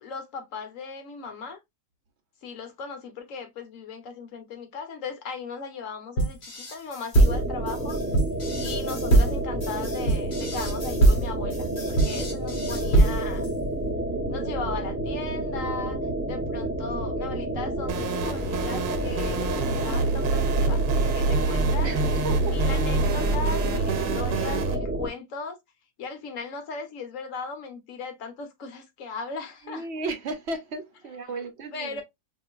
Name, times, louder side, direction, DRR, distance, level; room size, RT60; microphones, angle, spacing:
voice 1, 0.0-1.6 2.4-8.0 8.6-13.5 14.3-20.8 21.1-21.9 22.4-25.6 26.0-29.9 31.7-32.0, left 4 dB, 60° left, 1.2 m, -37 dB
sound 1, 6.2-13.5, right 2 dB, 45° left, 1.4 m, -23 dB
sound 2, 7.2-25.1, right 1 dB, 10° right, 0.6 m, -30 dB
sound 3, 17.9-24.8, right 3 dB, 85° right, 1.2 m, -26 dB
voice 2, 21.8-22.6 29.7-32.0, right 3 dB, 55° right, 0.8 m, -34 dB
5.1 x 2.5 x 2.3 m
omnidirectional pair, 1.6 m